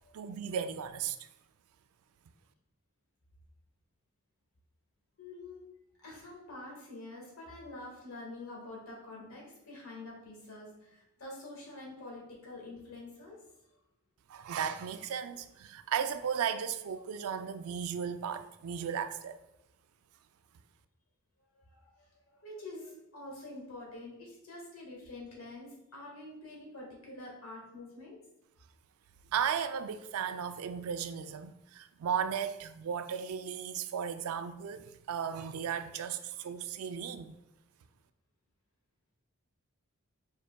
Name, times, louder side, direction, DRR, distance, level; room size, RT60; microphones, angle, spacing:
voice 1, 0.1-1.2 14.3-19.4 29.3-37.3, right 7 dB, 85° right, 0.3 m, -35 dB
voice 2, 5.2-5.6 6.0-13.4 21.7-21.9 22.4-28.2, left 2 dB, 80° left, 1.6 m, -46 dB
5.1 x 4.6 x 2.2 m
head